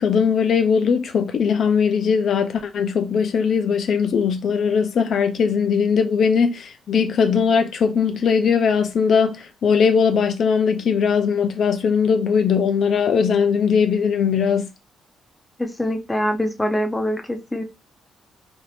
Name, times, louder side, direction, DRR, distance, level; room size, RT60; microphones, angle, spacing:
voice 1, 0.0-14.7, left 6 dB, 60° left, 0.4 m, -19 dB
voice 2, 15.6-17.6, equal, 10° left, 0.5 m, -24 dB
2.6 x 2.4 x 3.3 m
cardioid pair, 90°, 0 cm